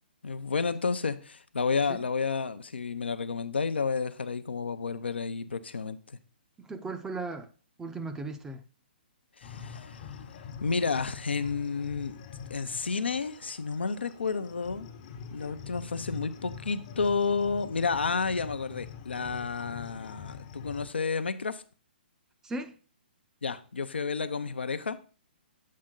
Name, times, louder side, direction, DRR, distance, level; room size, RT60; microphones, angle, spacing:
voice 1, 0.2-6.2 9.4-10.0 10.6-12.2 12.5-14.9 15.3-21.6 23.4-25.0, left 5 dB, 80° left, 0.6 m, -31 dB
voice 2, 6.6-7.5 7.8-8.6 22.4-22.7, right 3 dB, 10° right, 0.5 m, -36 dB
sound 1, 9.4-20.9, left 7 dB, 40° left, 0.7 m, -45 dB
7.5 x 4.4 x 3.7 m
hypercardioid pair, 130°, 6 cm